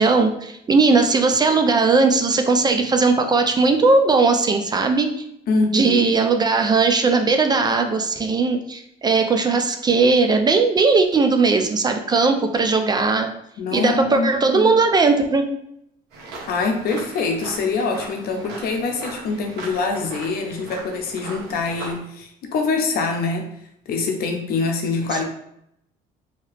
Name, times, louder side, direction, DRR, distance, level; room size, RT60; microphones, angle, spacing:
voice 1, 0.0-5.1 5.7-13.3 13.7-15.5, right 4 dB, 25° right, 6 dB, 0.3 m, -18 dB
voice 2, 5.5-6.1 13.6-14.7 16.5-23.4 23.9-25.2, left 4 dB, 65° left, 4 dB, 0.7 m, -24 dB
sound 1, 16.1-22.0, right 2 dB, 75° right, 1.0 m, -38 dB
2.8 x 2.8 x 3.2 m, 0.76 s
cardioid pair, 110°, 17 cm